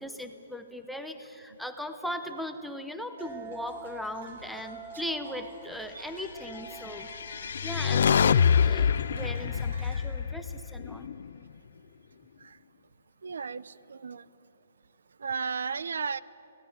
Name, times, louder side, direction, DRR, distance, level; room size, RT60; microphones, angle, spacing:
voice 1, 0.0-7.1 7.6-11.1, equal, ahead, 5 dB, 0.7 m, -38 dB
sound 1, 3.2-10.1, right 2 dB, 50° right, 4.8 m, -46 dB
sound 2, 6.9-11.3, left 7 dB, 55° left, 0.4 m, -25 dB
voice 2, 13.2-14.2 15.2-16.2, right 5 dB, 85° right, 18 dB, 0.6 m, -34 dB
24.0 x 18.0 x 8.8 m, 2.9 s
hypercardioid pair, 175°, 0 cm